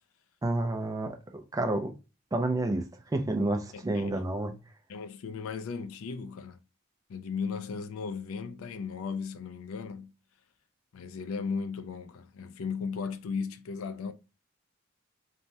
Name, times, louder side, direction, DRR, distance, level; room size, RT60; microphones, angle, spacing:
voice 1, 0.4-1.2 1.5-1.9 2.3-2.9 3.1-4.5, right 2 dB, 15° right, 0.3 m, -29 dB
voice 2, 3.7-4.3 4.9-6.6 7.1-10.1 10.9-14.1, left 5 dB, 80° left, 0.4 m, -36 dB
3.2 x 2.1 x 2.6 m
head